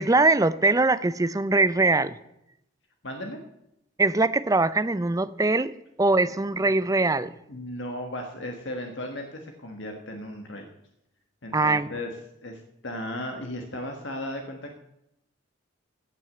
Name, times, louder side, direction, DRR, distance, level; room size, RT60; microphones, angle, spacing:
voice 1, 0.0-2.1 4.0-5.7 6.0-7.3 11.5-11.9, right 2 dB, 15° right, 16 dB, 0.4 m, -22 dB
voice 2, 3.0-3.4 6.5-6.6 7.5-10.7 11.4-12.1 12.4-14.8, left 1 dB, 60° left, 4 dB, 1.4 m, -36 dB
16.0 x 6.2 x 7.7 m, 0.83 s
head